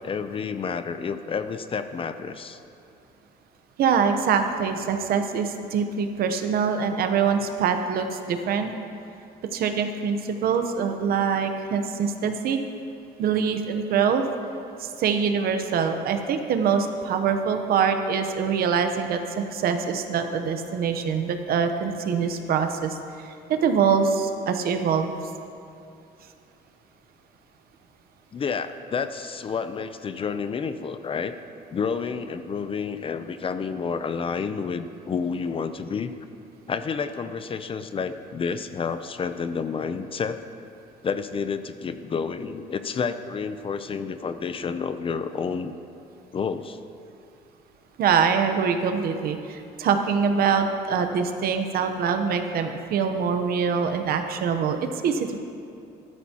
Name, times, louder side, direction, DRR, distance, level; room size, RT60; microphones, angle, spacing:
voice 1, 0.0-2.6 28.3-31.4 31.7-36.1 36.7-40.4 41.0-45.8 46.3-46.8, left 5 dB, 35° left, 10 dB, 0.5 m, -30 dB
voice 2, 3.8-8.7 9.5-12.6 13.2-14.2 14.8-23.0 23.2-25.1 48.0-54.8 55.0-55.4, right 6 dB, 65° right, 7 dB, 0.9 m, -24 dB
14.0 x 12.5 x 2.9 m, 2.6 s
cardioid pair, 110°, 17 cm